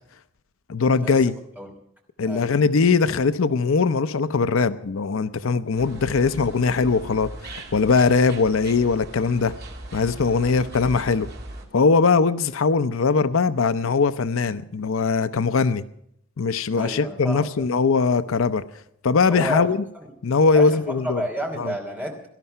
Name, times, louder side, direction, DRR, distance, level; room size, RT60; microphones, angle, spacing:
voice 1, 0.7-1.3 2.2-9.5 9.9-11.3 11.7-15.8 16.4-18.6 19.0-19.8 20.2-21.2 21.6-21.7, left 4 dB, 70° left, 0.5 m, -21 dB
sound 1, 5.7-11.6, right 1 dB, 45° right, 2.5 m, -39 dB
voice 2, 16.7-17.6 19.3-19.7 20.5-22.3, equal, 10° right, 2.8 m, -31 dB
18.0 x 12.5 x 5.5 m
head